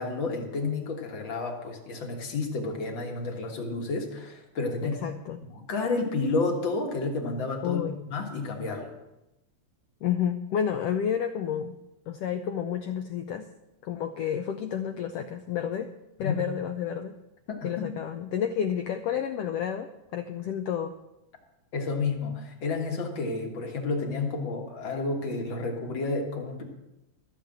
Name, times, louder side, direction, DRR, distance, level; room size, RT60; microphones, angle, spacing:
voice 1, 0.0-5.0 5.5-8.9 16.2-16.4 17.5-17.9 21.7-26.6, left 3 dB, 45° left, 2 dB, 2.0 m, -31 dB
voice 2, 4.8-5.4 7.6-8.0 10.0-11.8 12.1-13.5 13.8-15.9 16.2-17.2 17.6-20.9, left 8 dB, 90° left, 7 dB, 1.3 m, -30 dB
13.5 x 6.7 x 7.8 m, 0.95 s
omnidirectional pair, 3.4 m